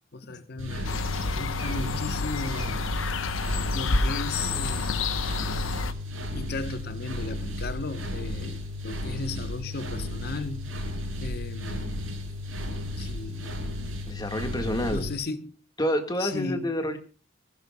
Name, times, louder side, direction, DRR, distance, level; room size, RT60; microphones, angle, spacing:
voice 1, 0.1-2.8 3.7-5.2 6.3-10.7 11.2-12.0 13.0-13.6 14.9-15.6 16.2-16.7, left 3 dB, 50° left, 1.1 m, -36 dB
sound 1, 0.6-15.1, left 1 dB, 90° right, 6.0 m, -34 dB
sound 2, 0.8-5.9, left 3 dB, 85° left, 1.0 m, -29 dB
voice 2, 14.1-15.1 15.8-17.0, equal, 20° left, 1.9 m, -28 dB
24.5 x 16.0 x 2.3 m
head